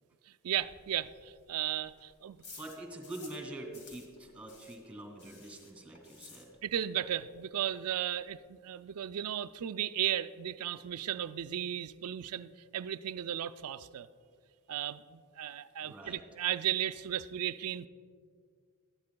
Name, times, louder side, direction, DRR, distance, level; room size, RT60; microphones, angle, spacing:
voice 1, 0.4-2.4 6.6-14.1 14.7-17.9, right 11 dB, 75° right, 13 dB, 0.4 m, -35 dB
sound 1, 0.6-3.5 3.7-6.9 7.2-7.3 7.6-7.7 7.9-8.4, left 3 dB, 70° left, 2.1 m, -54 dB
voice 2, 2.6-6.5 15.8-16.2, right 1 dB, 5° right, 3 dB, 2.2 m, -45 dB
20.0 x 13.0 x 2.2 m, 2.1 s
head